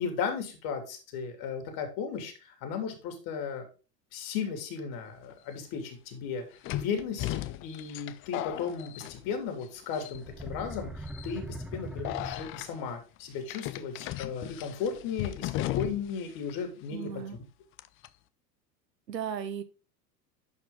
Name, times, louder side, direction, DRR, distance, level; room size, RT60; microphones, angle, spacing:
voice 1, 0.0-3.6 4.1-6.4 6.7-7.3 7.6-17.2, left 6 dB, 50° left, 5 dB, 3.1 m, -35 dB
sound 1, 5.3-5.4 6.6-9.6 9.9-10.4 11.1-11.3 12.0-12.7 13.5-16.2 16.5-16.6 17.8-18.1, left 15 dB, 25° left, 0.4 m, -36 dB
sound 2, 10.1-12.9, right 1 dB, ahead, 0.9 m, -41 dB
voice 2, 16.9-17.4 19.1-19.6, right 8 dB, 85° right, 11 dB, 1.2 m, -35 dB
11.0 x 4.7 x 3.9 m, 0.33 s
hypercardioid pair, 90°, 49 cm